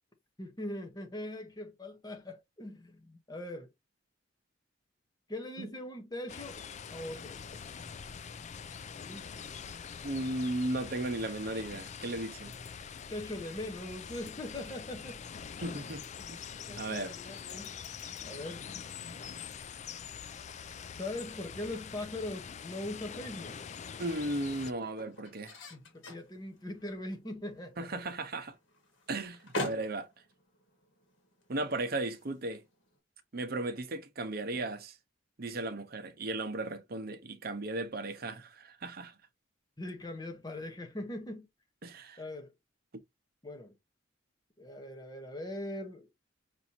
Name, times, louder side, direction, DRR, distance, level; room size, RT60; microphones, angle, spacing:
voice 1, 0.4-3.7 5.3-6.6 6.9-7.4 9.0-9.3 13.1-15.2 16.2-16.3 16.7-17.7 18.2-18.7 21.0-23.5 25.7-28.0 39.8-41.5 42.2-42.5 43.4-43.7 44.6-46.1, left 1 dB, 20° left, 0.8 m, -41 dB
sound 1, 6.3-24.7, left 7 dB, 35° left, 0.3 m, -44 dB
voice 2, 10.0-12.5 15.6-16.0 16.3-16.4 16.8-17.2 24.0-25.6 27.8-28.5 29.1-30.1 31.5-32.6 33.3-35.0 35.4-39.1 41.8-42.2, right 2 dB, 50° right, 0.8 m, -36 dB
sound 2, 22.6-33.0, left 1 dB, 85° left, 1.7 m, -46 dB
6.0 x 2.8 x 2.7 m
head